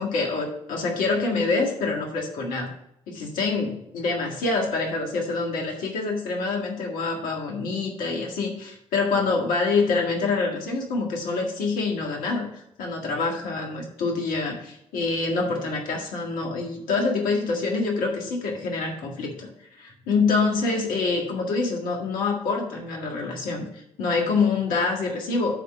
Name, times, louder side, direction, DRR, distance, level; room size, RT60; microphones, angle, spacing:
voice 1, 0.0-2.7 3.1-19.5 19.8-25.5, left 4 dB, 75° left, 1 dB, 1.8 m, -26 dB
9.0 x 3.8 x 6.8 m, 0.76 s
hypercardioid pair, 40°, 14 cm